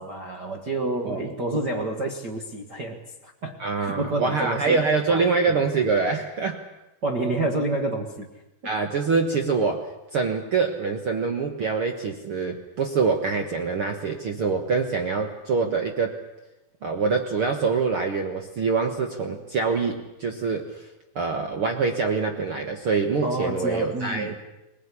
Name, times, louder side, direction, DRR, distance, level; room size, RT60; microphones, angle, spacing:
voice 1, 0.0-5.6 7.0-8.3 23.2-24.4, right 2 dB, 55° right, 0 dB, 1.1 m, -29 dB
voice 2, 3.6-6.6 8.6-16.2 16.8-20.8 21.1-24.4, right 4 dB, 75° right, 5 dB, 1.2 m, -25 dB
21.0 x 20.5 x 9.8 m, 0.95 s
omnidirectional pair, 4.7 m